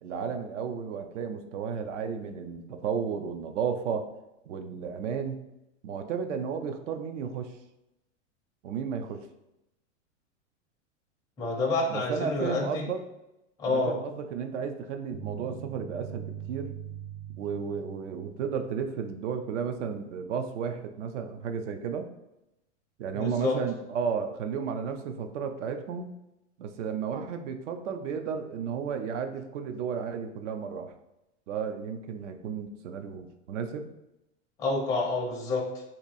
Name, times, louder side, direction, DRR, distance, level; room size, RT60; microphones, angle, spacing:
voice 1, 0.0-4.1 4.5-5.4 5.8-7.6 8.6-9.3 11.9-13.0 13.7-16.8 17.4-22.1 23.0-26.1 26.6-30.9 31.5-33.9, right 6 dB, 75° right, 7 dB, 0.6 m, -33 dB
voice 2, 11.4-12.9 13.6-14.0 23.1-23.6 34.6-35.8, left 2 dB, 10° left, -3 dB, 0.4 m, -28 dB
sound 1, 15.1-19.3, right 8 dB, 55° right, 0.9 m, -42 dB
2.9 x 2.6 x 4.0 m, 0.90 s
supercardioid pair, 150°, 36 cm